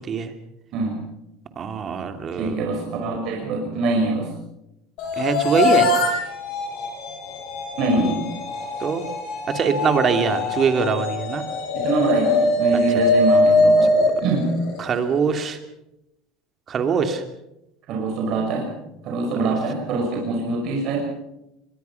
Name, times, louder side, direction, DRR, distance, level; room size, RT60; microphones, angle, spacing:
voice 1, 1.6-2.6 5.2-5.9 8.8-9.0 9.5-11.4 14.8-15.6 16.7-17.2 19.4-19.6, right 6 dB, 35° right, 7 dB, 2.8 m, -22 dB
voice 2, 2.3-4.3 7.8-8.3 11.7-13.9 14.2-14.5 17.9-18.7 19.0-21.0, right 3 dB, 55° right, 0 dB, 5.4 m, -24 dB
sound 1, 5.0-15.2, left 2 dB, 60° left, 7.6 m, -22 dB
24.0 x 21.0 x 5.9 m, 0.87 s
supercardioid pair, 120°, 0 cm